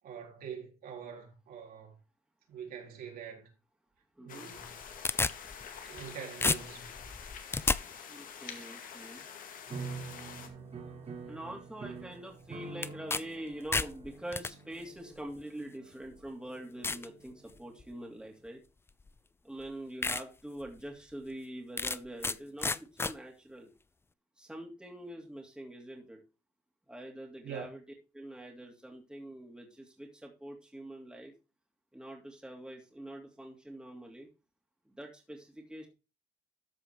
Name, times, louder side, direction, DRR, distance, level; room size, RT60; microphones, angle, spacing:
voice 1, 0.0-1.9 2.5-3.5 4.2-4.8 5.8-7.0 27.4-27.6, right 7 dB, 60° right, 4.2 m, -44 dB
voice 2, 4.2-4.6 8.1-9.2 10.4-10.5 11.3-18.6 19.4-22.7 23.0-23.7 24.4-26.2 26.9-27.8 28.1-31.3 31.9-34.3 34.9-35.9, right 1 dB, 5° right, 2.9 m, -45 dB
sound 1, 4.3-10.5, left 7 dB, 55° left, 2.1 m, -47 dB
sound 2, 4.6-6.1 6.4-7.8 12.8-13.2 13.5-14.5 15.4-15.5 16.1-16.2 16.8-17.1 17.6-17.9 19.1-19.2 19.6-19.7 20.0-20.2 20.7-20.8 21.8-22.4 22.6-23.1, left 3 dB, 15° left, 0.4 m, -31 dB
sound 3, 9.7-18.0, right 4 dB, 35° right, 2.5 m, -47 dB
13.5 x 4.8 x 4.8 m
cardioid pair, 110°, 17 cm